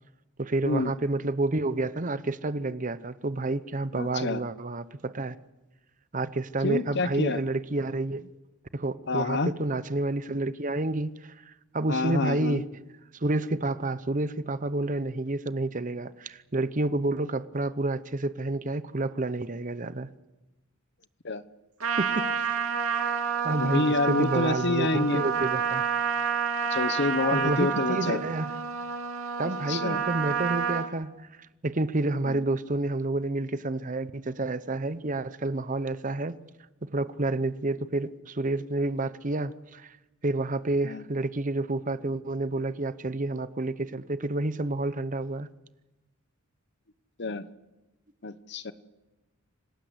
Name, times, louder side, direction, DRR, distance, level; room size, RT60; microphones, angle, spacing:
voice 1, 0.4-5.4 6.1-8.3 8.7-12.6 13.1-20.1 22.0-22.7 23.4-25.9 27.3-28.5 29.4-31.1 31.6-36.4 36.8-40.0 40.2-45.5, right 2 dB, 35° right, 0.8 m, -29 dB
voice 2, 4.0-4.4 6.6-7.4 9.1-9.5 11.9-12.6 21.2-21.4 23.6-25.2 26.7-28.2 29.7-30.0 32.2-32.4 40.8-41.0 47.2-47.4 48.2-48.7, left 3 dB, 55° left, 1.0 m, -28 dB
Trumpet, 21.8-30.9, right 7 dB, 75° right, 2.6 m, -29 dB
26.5 x 19.0 x 8.1 m
head